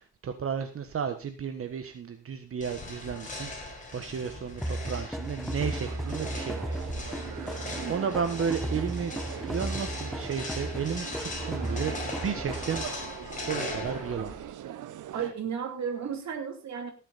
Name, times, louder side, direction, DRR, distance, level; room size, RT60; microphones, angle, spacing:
voice 1, 0.0-6.7 7.4-7.5 7.9-9.1 9.4-12.9 13.1-14.3, right 7 dB, 45° right, 7 dB, 1.4 m, -33 dB
sound 1, 2.6-14.5, left 2 dB, 25° left, 5.4 m, -40 dB
sound 2, 4.6-13.1, right 1 dB, ahead, 0.7 m, -35 dB
sound 3, 5.6-15.3, right 11 dB, 75° right, 1.0 m, -42 dB
voice 2, 7.8-8.2 15.1-16.9, right 7 dB, 60° right, 3 dB, 3.2 m, -34 dB
18.0 x 7.6 x 4.2 m, 0.32 s
cardioid pair, 130°, 31 cm